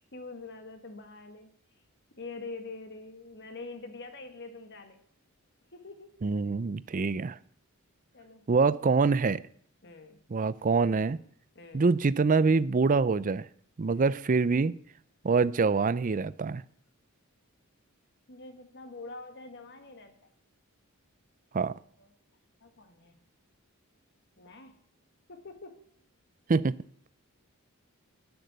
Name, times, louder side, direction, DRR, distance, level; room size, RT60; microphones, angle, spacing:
voice 1, 0.1-1.5 2.2-5.0 5.7-6.1 8.1-8.5 9.8-10.2 11.5-11.8 13.8-14.1 18.3-20.1 22.0-22.1 22.6-23.2 24.4-24.8 25.3-25.8, left 3 dB, 50° left, 1.7 m, -45 dB
voice 2, 6.2-7.4 8.5-9.4 10.3-11.2 11.7-13.5 13.8-14.8 15.2-16.6 21.5-21.8 26.5-26.8, right 4 dB, 35° right, 0.4 m, -25 dB
11.5 x 9.6 x 7.9 m
head